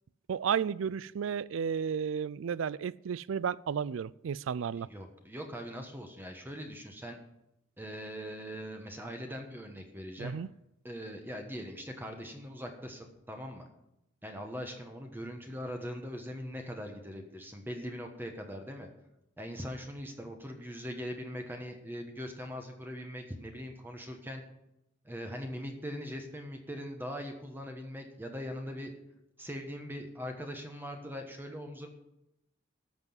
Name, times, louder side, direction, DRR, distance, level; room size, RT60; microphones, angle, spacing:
voice 1, 0.3-4.9 10.2-10.5, right 7 dB, 85° right, 0.4 m, -33 dB
voice 2, 4.7-7.2 7.8-10.3 10.8-13.6 14.2-18.9 19.4-24.4 25.0-28.9 29.4-31.9, equal, 10° right, 1.2 m, -41 dB
13.0 x 6.0 x 7.1 m
head